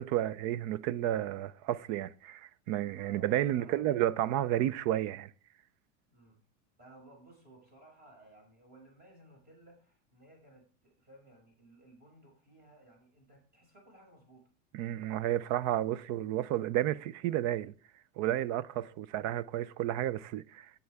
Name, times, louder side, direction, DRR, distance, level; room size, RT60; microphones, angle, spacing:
voice 1, 0.0-5.3 14.7-17.7 18.2-20.7, right 13 dB, 45° right, 0.6 m, -31 dB
voice 2, 3.0-4.1 6.1-6.4 6.8-14.5 18.7-19.0, right 1 dB, 25° right, 6.2 m, -58 dB
17.5 x 7.0 x 3.5 m
supercardioid pair, 140°, 40 cm